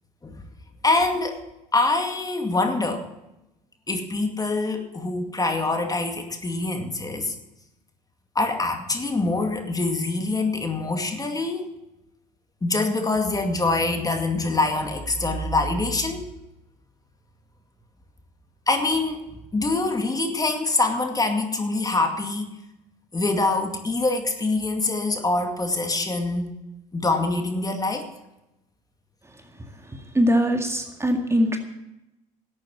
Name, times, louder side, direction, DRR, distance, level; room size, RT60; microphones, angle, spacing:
voice 1, 0.8-1.4 1.7-3.1 3.9-7.3 8.3-11.7 12.6-16.3 18.7-22.5 23.1-26.5 26.9-28.1, left 2 dB, 20° left, 5 dB, 2.2 m, -24 dB
voice 2, 30.1-31.6, equal, 15° right, 5 dB, 2.0 m, -21 dB
12.0 x 8.7 x 8.6 m, 0.91 s
hypercardioid pair, 70°, 19 cm